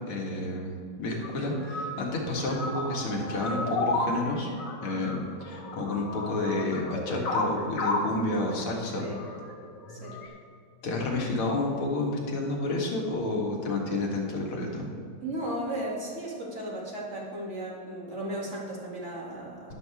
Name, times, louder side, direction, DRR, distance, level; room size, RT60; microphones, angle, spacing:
voice 1, 0.1-0.7 1.0-4.5 4.8-5.2 5.4-9.1 10.8-14.9, left 2 dB, 80° left, -1 dB, 2.7 m, -30 dB
sound 1, 1.2-10.3, left 2 dB, 60° left, 2.1 m, -33 dB
voice 2, 15.2-19.7, right 1 dB, 35° right, -4 dB, 2.7 m, -35 dB
12.5 x 11.0 x 3.5 m, 2.4 s
omnidirectional pair, 2.3 m